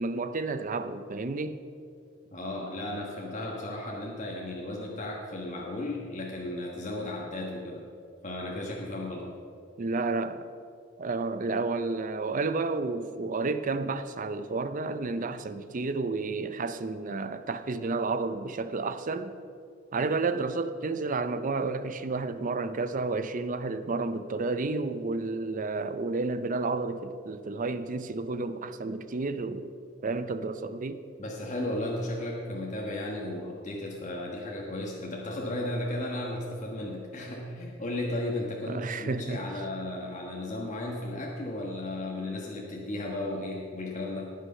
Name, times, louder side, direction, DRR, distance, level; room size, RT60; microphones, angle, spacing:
voice 1, 0.0-1.6 9.8-10.5 11.0-19.3 19.9-29.7 30.0-31.0 38.7-39.4, right 3 dB, 40° right, 11 dB, 0.6 m, -31 dB
voice 2, 2.3-7.9 8.2-9.3 31.2-44.3, left 1 dB, 40° left, -2 dB, 1.3 m, -35 dB
18.5 x 6.5 x 5.5 m, 2.4 s
head